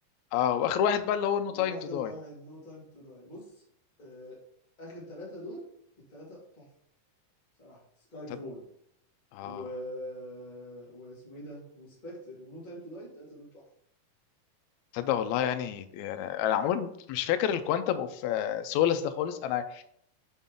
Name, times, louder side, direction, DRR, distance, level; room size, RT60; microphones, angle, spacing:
voice 1, 0.3-2.1 9.3-9.6 14.9-19.8, left 9 dB, 85° left, 10 dB, 1.6 m, -28 dB
voice 2, 1.5-3.6 4.0-4.4 4.8-5.6 6.1-6.7 7.6-8.6 9.4-13.6, equal, 15° left, -6 dB, 1.7 m, -44 dB
5.5 x 5.2 x 3.7 m, 0.70 s
omnidirectional pair, 3.8 m